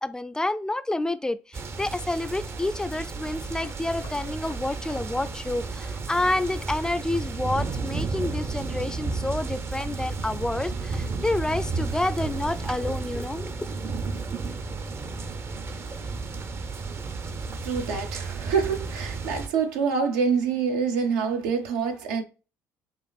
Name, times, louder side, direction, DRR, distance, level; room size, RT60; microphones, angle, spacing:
voice 1, 0.0-13.5, left 2 dB, 10° left, 0.3 m, -29 dB
sound 1, 1.5-19.5, right 4 dB, 40° right, 0.5 m, -33 dB
sound 2, 3.3-5.0 5.5-8.5, left 3 dB, 90° left, 1.4 m, -51 dB
voice 2, 17.6-22.2, right 5 dB, 85° right, 0.7 m, -26 dB
5.3 x 2.5 x 2.3 m
hypercardioid pair, 65°, 7 cm